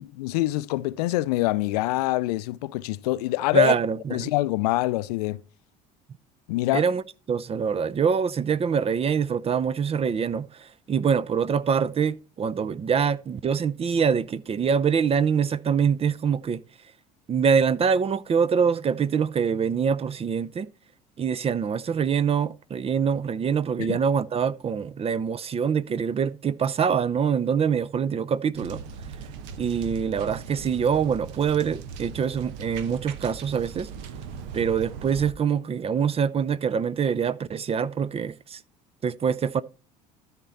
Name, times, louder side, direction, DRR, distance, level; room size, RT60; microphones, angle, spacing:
voice 1, 0.2-3.7 4.1-5.4 6.5-6.8 23.8-24.0, left 18 dB, 70° left, 0.5 m, -25 dB
voice 2, 3.5-4.3 6.7-7.0 7.3-16.6 17.3-20.7 21.2-28.8 29.6-33.9 34.5-38.6 39.0-39.6, right 7 dB, 30° right, 0.6 m, -24 dB
sound 1, 28.5-35.3, right 6 dB, 65° right, 1.1 m, -39 dB
13.0 x 4.5 x 4.0 m
hypercardioid pair, 65°, 21 cm